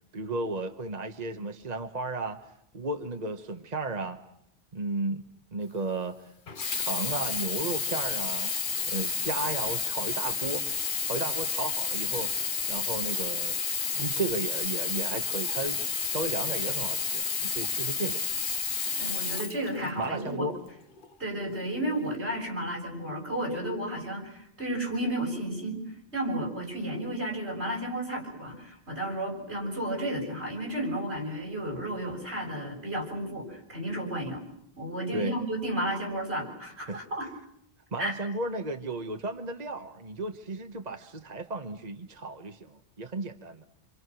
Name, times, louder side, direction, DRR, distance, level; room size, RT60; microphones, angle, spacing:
voice 1, 0.1-2.4 2.7-4.2 4.7-6.2 6.7-8.5 8.9-10.7 11.0-12.3 12.7-13.6 13.9-15.8 16.1-18.2 20.0-20.5 35.1-35.4 36.9-37.0 37.9-43.7, right 2 dB, 40° right, 6 dB, 1.3 m, -34 dB
Sink (filling or washing), 6.5-20.2 21.0-21.1, left 5 dB, 55° left, 1.3 m, -31 dB
voice 2, 19.0-20.5 21.2-25.8 26.1-34.4 34.8-37.3 38.0-38.1, right 1 dB, 85° right, 1 dB, 7.7 m, -32 dB
28.5 x 26.0 x 6.2 m, 0.76 s
omnidirectional pair, 1.1 m